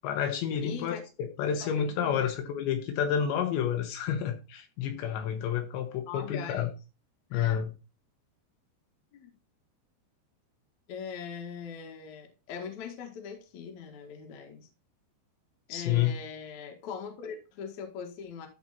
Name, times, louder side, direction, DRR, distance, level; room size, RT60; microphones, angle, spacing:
voice 1, 0.0-6.7 7.3-7.7 15.7-16.1, left 9 dB, 75° left, 3.1 m, -30 dB
voice 2, 0.6-1.0 1.6-2.3 6.1-6.7 7.3-7.6 9.1-9.3 10.9-14.7 15.7-18.5, left 6 dB, 55° left, 2.3 m, -41 dB
13.5 x 4.7 x 4.1 m
omnidirectional pair, 5.5 m